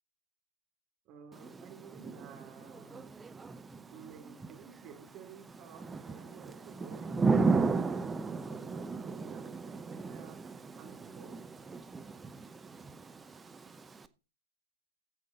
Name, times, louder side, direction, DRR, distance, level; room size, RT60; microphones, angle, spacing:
voice 1, 1.0-3.1 3.9-11.4, right 7 dB, 35° right, 4 dB, 2.8 m, -53 dB
Thunder / Rain, 1.3-14.1, right 4 dB, 10° right, 0.7 m, -35 dB
12.0 x 8.2 x 3.9 m, 0.33 s
figure-of-eight pair, 105°, 0 cm